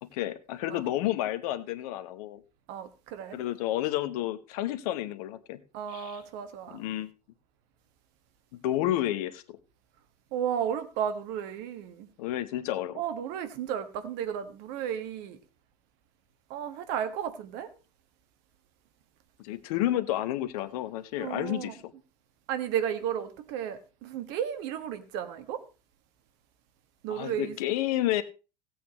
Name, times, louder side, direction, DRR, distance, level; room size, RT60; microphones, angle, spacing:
voice 1, 0.0-2.4 3.3-5.6 5.9-6.2 6.7-7.1 8.6-9.6 12.2-13.0 19.4-21.8 27.1-28.2, left 14 dB, 60° left, 1.1 m, -30 dB
voice 2, 2.7-3.4 5.7-6.8 10.3-12.1 12.9-15.4 16.5-17.7 21.2-21.7 22.5-25.6 27.0-27.6, right 9 dB, 55° right, 1.6 m, -33 dB
16.5 x 8.5 x 3.0 m
hypercardioid pair, 80°, 21 cm